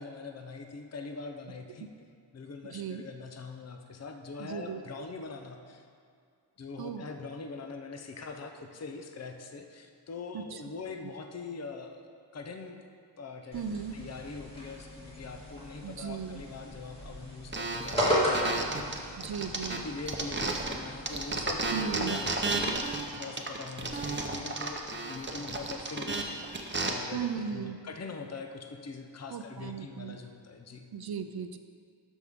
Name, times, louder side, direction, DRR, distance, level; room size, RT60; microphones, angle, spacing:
voice 1, 0.0-2.1 2.3-5.8 6.6-12.1 12.3-12.8 13.2-13.6 13.9-19.2 19.7-30.9, left 4 dB, 35° left, 4 dB, 0.7 m, -42 dB
voice 2, 2.6-3.0 4.4-4.8 6.8-7.1 10.3-10.6 13.5-14.0 15.8-16.4 19.2-19.8 21.7-22.2 27.1-27.8 29.3-30.2 30.9-31.6, right 7 dB, 55° right, 8 dB, 0.5 m, -36 dB
sound 1, 13.5-22.7, equal, 15° left, 2.3 m, -36 dB
sound 2, 17.5-20.8 21.1-26.9, right 3 dB, 25° right, 0.8 m, -33 dB
12.5 x 5.4 x 3.6 m, 2.3 s
wide cardioid pair, 85°, 45 cm